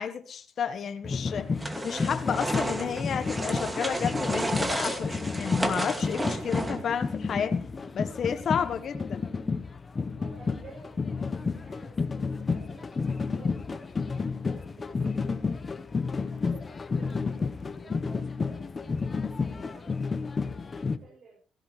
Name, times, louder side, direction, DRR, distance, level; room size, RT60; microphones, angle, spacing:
voice 1, 0.0-1.6 1.8-7.6 7.9-9.2, left 7 dB, 55° left, 10 dB, 1.3 m, -31 dB
sound 1, 1.0-21.0, left 4 dB, 35° left, 1.1 m, -31 dB
sound 2, 1.6-7.0, right 1 dB, 15° right, 2.3 m, -32 dB
voice 2, 10.2-15.8 16.5-16.6 16.9-17.5 17.8-19.2 19.5-20.1 20.4-21.4, right 3 dB, 60° right, -3 dB, 7.7 m, -52 dB
17.5 x 15.5 x 3.3 m, 0.40 s
cardioid pair, 90°, 0 cm